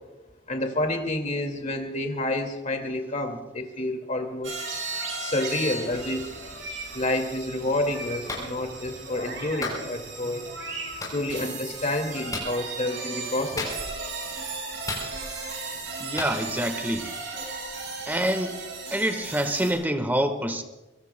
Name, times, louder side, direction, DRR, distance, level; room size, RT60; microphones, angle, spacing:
voice 1, 0.5-4.6 5.2-6.3 6.9-10.4 11.1-13.9, left 1 dB, 40° left, 4 dB, 2.1 m, -29 dB
sound 1, 4.4-19.7, right 3 dB, 80° right, 6.6 m, -36 dB
Clapping, 8.3-8.5 9.6-9.8 11.0-11.2 12.3-12.5 13.6-14.0 14.9-15.4 16.2-16.3, left 2 dB, 20° left, 6.4 m, -32 dB
voice 2, 16.0-17.0 18.1-18.6 18.9-20.6, right 1 dB, 10° right, 7 dB, 1.3 m, -26 dB
25.0 x 22.5 x 2.2 m, 1.1 s
head